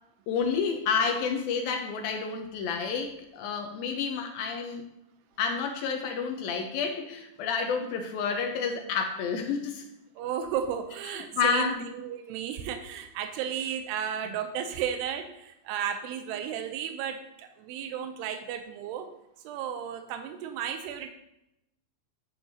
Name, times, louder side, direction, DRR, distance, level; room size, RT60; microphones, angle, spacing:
voice 1, 0.3-4.9 5.4-9.8 11.3-11.8, left 6 dB, 75° left, 3 dB, 2.4 m, -29 dB
voice 2, 10.2-19.1 19.4-21.1, right 8 dB, 85° right, 7 dB, 2.7 m, -34 dB
10.5 x 9.2 x 2.8 m, 0.86 s
omnidirectional pair, 4.7 m